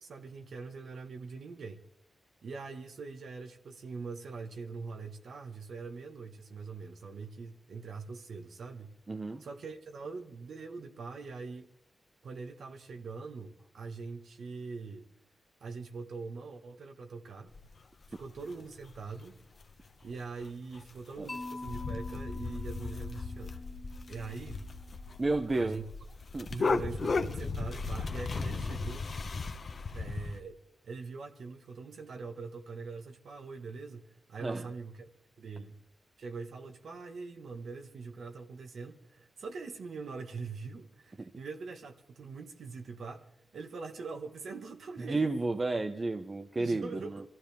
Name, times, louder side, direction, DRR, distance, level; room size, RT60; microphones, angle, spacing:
voice 1, 0.0-1.8 2.4-8.9 9.4-11.7 12.2-15.1 15.6-17.5 18.1-19.4 20.0-23.6 24.1-24.7 25.5-25.8 26.5-29.1 29.9-30.5 30.8-35.1 35.4-35.8 36.2-45.3 46.6-47.2, right 4 dB, 80° right, 1.3 m, -43 dB
voice 2, 9.1-9.4 21.2-21.3 25.2-25.8 26.3-26.5 34.4-34.7 41.2-41.3 45.0-47.2, right 3 dB, 30° right, 0.7 m, -32 dB
sound 1, 17.5-17.6 18.2-18.5 18.9-19.0 19.4-19.5 19.7-20.1 20.4-20.5 20.8-20.9 21.2-30.4, left 4 dB, 50° left, 1.0 m, -36 dB
Mallet percussion, 21.3-25.3, left 2 dB, 20° left, 1.7 m, -45 dB
23.0 x 14.0 x 3.5 m
wide cardioid pair, 100°, 0 cm